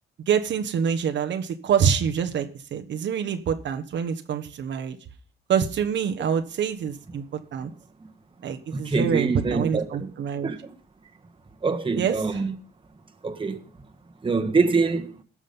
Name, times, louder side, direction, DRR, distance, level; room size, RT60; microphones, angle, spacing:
voice 1, 0.3-5.0 5.5-7.7 8.4-10.5 12.0-12.4, right 7 dB, 65° right, 1.3 m, -26 dB
voice 2, 8.7-10.1 10.4-10.7 11.6-12.5 13.2-13.6 14.2-15.2, right 4 dB, 25° right, 1.6 m, -24 dB
17.0 x 6.3 x 5.5 m
cardioid pair, 90°, 20 cm